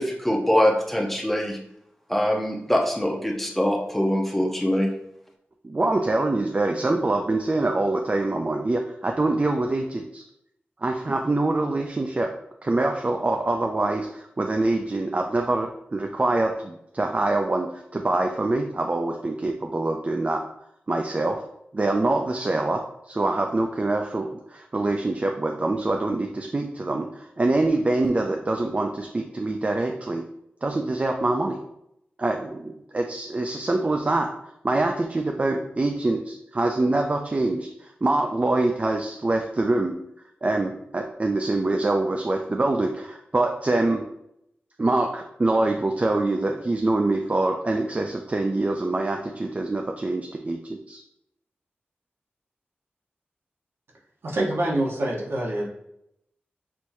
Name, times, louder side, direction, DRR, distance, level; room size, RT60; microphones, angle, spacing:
voice 1, 0.0-1.6 2.1-4.9, left 1 dB, 5° left, 0 dB, 0.9 m, -23 dB
voice 2, 5.6-10.2 10.8-12.3 12.6-20.4 20.9-21.4 21.7-30.2 30.6-31.6 32.2-34.3 34.6-39.9 40.4-44.0 44.8-51.0, right 2 dB, 35° right, 3 dB, 0.4 m, -25 dB
voice 3, 54.2-55.7, right 1 dB, 75° right, -2 dB, 1.1 m, -25 dB
6.2 x 2.9 x 2.7 m, 0.78 s
wide cardioid pair, 60°, 4 cm